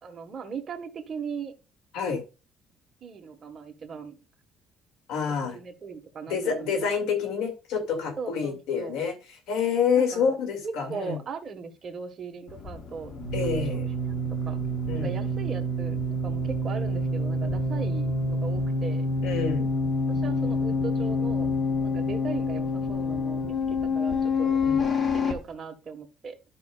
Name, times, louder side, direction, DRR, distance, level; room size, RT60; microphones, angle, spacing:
voice 1, 0.0-1.5 3.0-4.2 5.3-6.9 8.2-9.0 9.9-10.3 10.6-13.1 13.4-14.1 14.5-14.6 14.9-19.1 20.1-21.5 21.8-24.6 25.1-26.4, right 5 dB, 35° right, 4 dB, 1.5 m, -38 dB
voice 2, 5.1-5.5 6.3-9.2 9.5-11.2 13.3-13.9 14.9-15.2 19.2-19.7 24.6-24.8, left 6 dB, 85° left, 6 dB, 2.3 m, -27 dB
sound 1, 12.5-25.3, left 2 dB, 35° left, 1.2 m, -27 dB
12.0 x 5.6 x 2.4 m, 0.29 s
cardioid pair, 140°, 0 cm